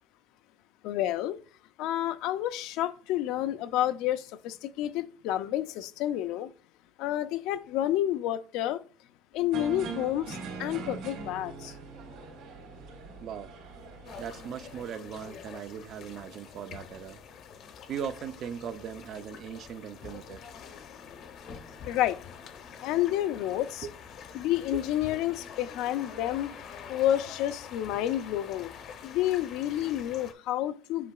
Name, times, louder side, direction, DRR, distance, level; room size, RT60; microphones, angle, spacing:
voice 1, 0.8-1.4 1.8-6.5 7.0-8.8 9.3-11.7 21.9-22.2 22.8-23.9 24.3-26.5 26.9-28.7 29.0-31.1, left 13 dB, 65° left, 0.4 m, -29 dB
sound 1, 9.5-14.8, right 4 dB, 70° right, 2.4 m, -42 dB
voice 2, 13.2-13.5 14.2-17.2 17.9-20.4 23.8-23.9 24.7-24.8, right 8 dB, 40° right, 0.5 m, -39 dB
sound 2, 14.0-30.3, left 7 dB, 45° left, 0.8 m, -46 dB
8.2 x 5.6 x 2.3 m
cardioid pair, 160°, 0 cm